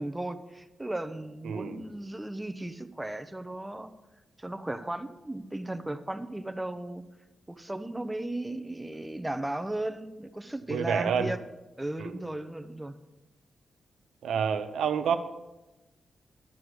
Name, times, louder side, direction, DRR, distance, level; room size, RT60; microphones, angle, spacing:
voice 1, 0.0-3.9 4.4-7.0 7.6-11.4 11.8-13.0, right 1 dB, 15° right, 10 dB, 0.7 m, -35 dB
voice 2, 1.4-1.8 10.7-11.3 12.0-12.2 14.2-15.2, right 7 dB, 90° right, 9 dB, 0.7 m, -28 dB
12.0 x 4.7 x 8.0 m, 1.0 s
cardioid pair, 70°, 0 cm